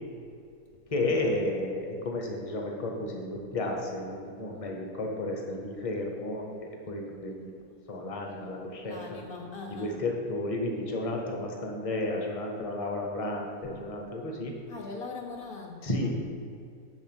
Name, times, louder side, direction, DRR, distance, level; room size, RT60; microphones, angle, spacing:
voice 1, 0.9-7.5 7.9-9.0 9.7-14.5 15.8-16.1, left 2 dB, 35° left, 1 dB, 0.5 m, -32 dB
voice 2, 8.8-10.0 14.7-15.9, left 3 dB, 85° left, 0 dB, 0.4 m, -41 dB
6.4 x 3.5 x 6.1 m, 2.3 s
omnidirectional pair, 1.6 m